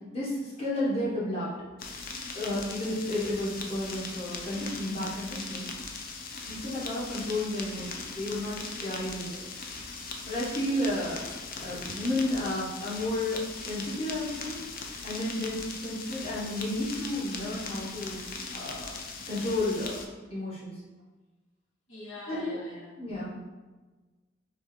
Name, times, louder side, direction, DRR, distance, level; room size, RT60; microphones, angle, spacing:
voice 1, 0.1-1.5 2.3-5.7 6.5-9.4 10.3-14.6 15.0-18.2 18.5-19.0 19.2-20.7 22.3-22.6 23.0-23.3, left 1 dB, 30° left, -8 dB, 1.4 m, -32 dB
sound 1, 1.8-20.1, left 4 dB, 50° left, 0.5 m, -39 dB
voice 2, 21.9-23.0, left 2 dB, 90° left, -5 dB, 1.3 m, -44 dB
3.6 x 3.3 x 4.3 m, 1.2 s
head